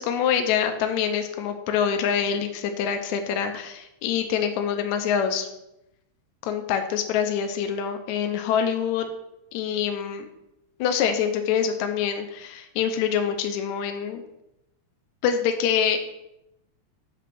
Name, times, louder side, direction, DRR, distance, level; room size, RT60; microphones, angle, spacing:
voice 1, 0.0-5.5 6.4-9.1 9.5-10.2 10.8-14.2 15.2-16.0, left 8 dB, 80° left, 6 dB, 1.9 m, -25 dB
7.4 x 3.0 x 5.9 m, 0.86 s
omnidirectional pair, 3.4 m